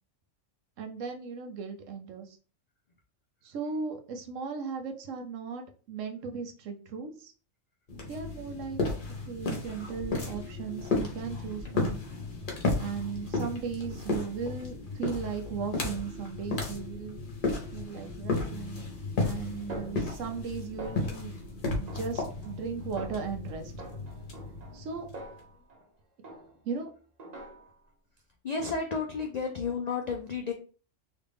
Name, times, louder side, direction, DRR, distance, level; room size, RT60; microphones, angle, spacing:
voice 1, 0.8-2.4 3.4-7.3 8.1-8.8 9.3-12.0 12.7-17.2 17.7-18.8 19.2-21.4 21.8-23.7 24.7-25.1 26.6-26.9, right 5 dB, 80° right, 5 dB, 1.0 m, -37 dB
sound 1, 7.9-25.4, left 3 dB, 45° left, 1.0 m, -34 dB
Snare drum, 19.7-20.5 20.8-21.4 21.9-22.7 23.0-23.4 23.8-25.9 26.2-26.8 27.2-27.9, right 1 dB, 40° right, 0.8 m, -45 dB
voice 2, 28.4-30.5, left 5 dB, 70° left, 2 dB, 0.3 m, -32 dB
3.1 x 2.5 x 3.4 m, 0.38 s
omnidirectional pair, 1.3 m